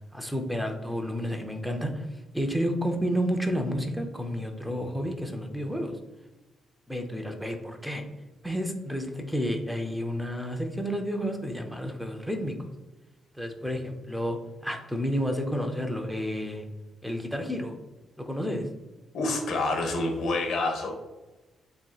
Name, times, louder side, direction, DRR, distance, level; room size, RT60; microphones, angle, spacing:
voice 1, 0.1-2.1 2.3-6.0 6.9-8.0 8.4-12.5 13.4-14.4 14.6-16.7 17.0-17.7 18.2-18.7, equal, ahead, 3 dB, 0.5 m, -30 dB
voice 2, 19.1-20.9, left 2 dB, 70° left, 3 dB, 1.0 m, -27 dB
7.4 x 2.8 x 2.3 m, 1.1 s
wide cardioid pair, 175°, 0 cm